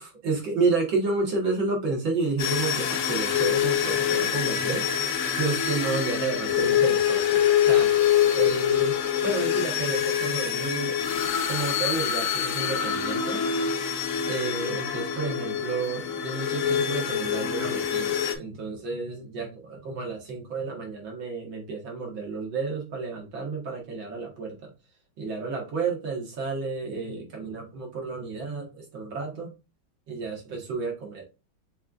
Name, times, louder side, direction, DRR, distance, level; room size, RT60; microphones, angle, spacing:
voice 1, 0.0-4.9 5.4-7.9 8.3-9.0 9.2-11.0 11.5-13.4 14.2-24.7 25.2-29.5 30.1-31.2, right 4 dB, 70° right, 1 dB, 2.4 m, -31 dB
sound 1, 2.4-18.3, left 9 dB, 75° left, 0.7 m, -25 dB
6.5 x 3.2 x 2.5 m, 0.27 s
omnidirectional pair, 2.3 m